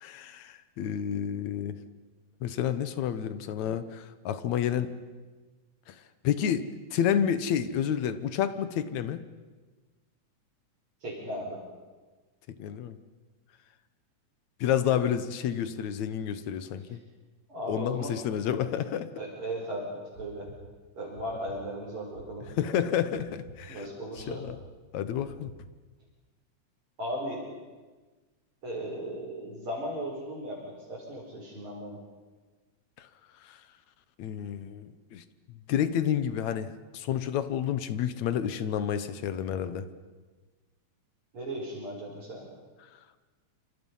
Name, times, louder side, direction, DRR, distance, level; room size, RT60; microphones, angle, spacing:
voice 1, 0.0-1.7 2.4-4.9 5.9-6.0 6.2-9.3 12.6-13.0 14.6-17.0 17.7-19.1 22.6-23.8 24.3-24.6 24.9-25.5 33.0-33.1 33.4-33.6 34.2-35.2 35.7-39.9, left 9 dB, 70° left, 12 dB, 2.3 m, -30 dB
voice 2, 11.0-11.6 17.5-18.1 19.2-20.5 21.0-22.4 23.7-24.4 27.0-27.4 28.6-32.0 41.3-42.4, equal, 40° right, -6 dB, 6.1 m, -36 dB
sound 1, 20.1-20.6 21.1-21.6 22.1-22.6 23.1-23.6 24.1-24.6 25.1-25.6, right 1 dB, 70° right, 4.2 m, -47 dB
28.0 x 26.5 x 5.6 m, 1.3 s
omnidirectional pair, 3.7 m